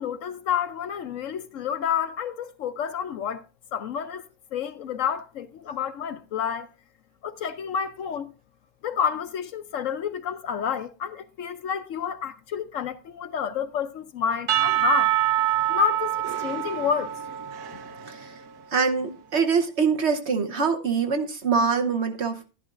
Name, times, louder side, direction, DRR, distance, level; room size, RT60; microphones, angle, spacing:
voice 1, 0.0-3.4 3.7-6.7 7.2-8.3 8.8-15.1 15.7-17.1, left 8 dB, 65° left, 0.9 m, -29 dB
Percussion / Church bell, 14.5-18.6, right 13 dB, 85° right, 1.4 m, -26 dB
voice 2, 18.7-22.5, right 5 dB, 50° right, 1.1 m, -24 dB
11.5 x 11.5 x 2.5 m
omnidirectional pair, 1.6 m